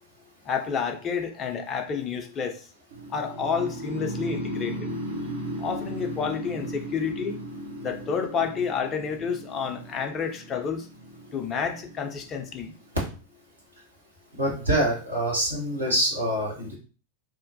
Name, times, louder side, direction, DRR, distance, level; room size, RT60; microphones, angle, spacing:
voice 1, 0.5-2.7 3.1-4.9 5.6-7.4 7.8-10.9 11.3-12.7, left 6 dB, 25° left, 0.5 m, -30 dB
sound 1, 2.9-12.9, equal, 65° right, 0.7 m, -36 dB
voice 2, 14.3-16.7, right 1 dB, 80° right, 1.4 m, -25 dB
2.9 x 2.1 x 2.7 m
figure-of-eight pair, 90°, 0 cm